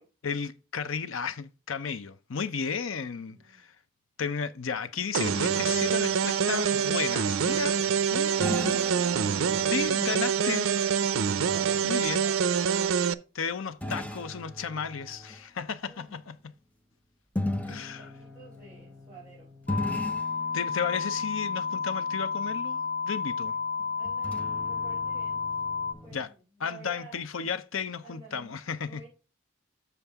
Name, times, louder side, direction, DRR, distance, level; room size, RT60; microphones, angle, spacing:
voice 1, 0.2-3.7 4.2-7.8 8.1-8.4 9.7-10.7 11.8-12.3 13.3-16.3 17.7-18.1 20.5-23.5 26.1-26.3 26.6-29.0, left 6 dB, 75° left, 0.6 m, -33 dB
voice 2, 3.1-3.6 11.4-12.6 15.9-16.1 17.5-19.5 24.0-25.5 26.0-27.6 28.0-29.1, right 3 dB, 10° right, 4.9 m, -52 dB
sound 1, 5.1-13.1, right 7 dB, 90° right, 0.5 m, -26 dB
sound 2, 8.4-10.0 13.8-15.4 17.4-26.2, left 1 dB, 5° left, 0.7 m, -38 dB
sound 3, 19.7-25.9, left 5 dB, 45° left, 1.0 m, -31 dB
7.1 x 6.9 x 3.5 m
head